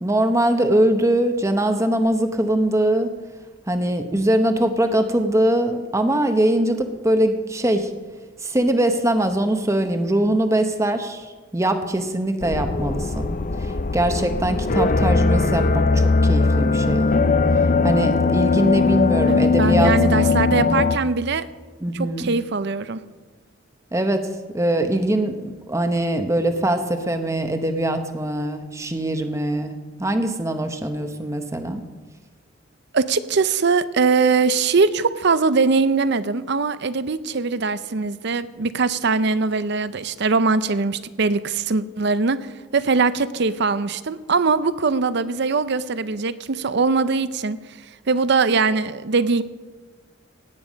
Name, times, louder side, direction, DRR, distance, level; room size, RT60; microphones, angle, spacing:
voice 1, 0.0-3.1 3.7-7.9 8.4-17.1 17.8-20.8 21.8-22.3 23.9-31.8, right 1 dB, 15° right, 7 dB, 0.9 m, -22 dB
sound 1, 12.4-21.0, left 4 dB, 40° left, 0.6 m, -19 dB
voice 2, 19.3-21.5 21.9-23.0 32.9-47.6 48.1-49.4, right 4 dB, 55° right, 15 dB, 0.6 m, -21 dB
17.5 x 9.2 x 5.2 m, 1.4 s
head